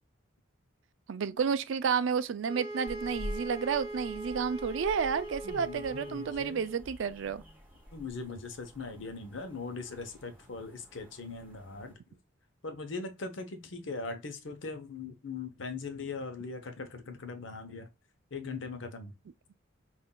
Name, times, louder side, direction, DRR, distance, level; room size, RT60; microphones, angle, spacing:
voice 1, 1.1-7.4, right 6 dB, 70° right, 0.4 m, -31 dB
sound 1, 2.5-6.9, right 1 dB, 30° right, 0.8 m, -41 dB
sound 2, 2.8-11.9, equal, 10° right, 1.3 m, -48 dB
voice 2, 5.4-6.6 7.9-12.0 12.6-17.9 18.3-19.1, left 4 dB, 65° left, 0.9 m, -40 dB
5.6 x 2.6 x 2.2 m
head